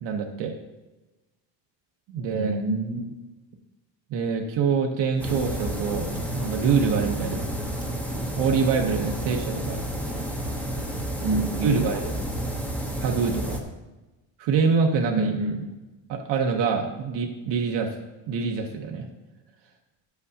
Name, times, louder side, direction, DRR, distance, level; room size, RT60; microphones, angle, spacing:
voice 1, 0.0-0.6 2.1-2.6 4.1-7.4 8.4-9.8 11.6-12.1 13.0-13.6 14.4-15.3 16.1-17.9 18.3-19.1, right 5 dB, 65° right, 2 dB, 0.9 m, -25 dB
voice 2, 2.3-3.2 11.2-11.9 15.1-15.7, right 2 dB, 35° right, 2 dB, 1.0 m, -27 dB
Run, 5.0-11.9, right 2 dB, 80° right, 1.9 m, -44 dB
sound 1, 5.2-13.6, right 1 dB, 5° left, 0.7 m, -31 dB
11.0 x 8.1 x 2.7 m, 1.1 s
cardioid pair, 170°, 46 cm